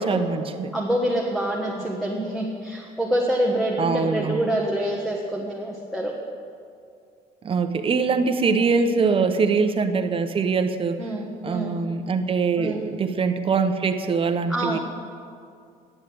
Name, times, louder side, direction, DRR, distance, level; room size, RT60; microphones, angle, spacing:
voice 1, 0.0-0.7 3.8-4.4 7.4-11.0 11.4-14.8, right 5 dB, 30° right, 8 dB, 0.8 m, -23 dB
voice 2, 0.7-6.1 9.0-9.3 11.0-11.8 12.6-12.8 14.5-14.8, right 1 dB, ahead, -3 dB, 1.2 m, -26 dB
10.0 x 7.4 x 7.7 m, 2.3 s
cardioid pair, 110°, 17 cm